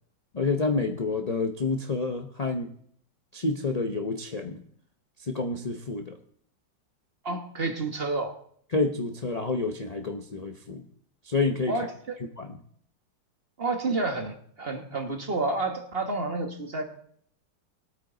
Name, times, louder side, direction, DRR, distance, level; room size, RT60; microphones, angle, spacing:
voice 1, 0.3-2.7 3.3-4.6 5.2-6.2 8.7-10.8 11.2-11.8 12.4-12.5, left 3 dB, 45° left, 5 dB, 0.5 m, -28 dB
voice 2, 7.2-8.4 11.7-12.2 13.6-16.8, right 3 dB, 35° right, 4 dB, 1.4 m, -30 dB
21.0 x 9.1 x 3.9 m, 0.63 s
omnidirectional pair, 2.0 m